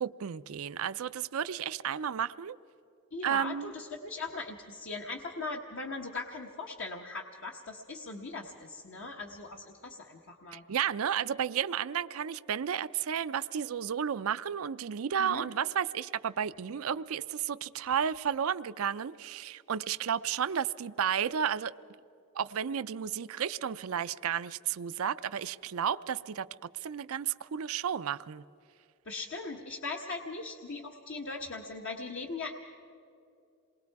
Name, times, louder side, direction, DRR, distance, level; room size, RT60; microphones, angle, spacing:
voice 1, 0.0-2.6 3.2-3.7 10.5-21.7 22.3-26.5 26.8-28.4, right 8 dB, 80° right, 0.5 m, -32 dB
voice 2, 3.1-10.6 15.2-15.4 29.0-32.5, left 3 dB, 60° left, 1.2 m, -39 dB
28.0 x 21.0 x 4.7 m
head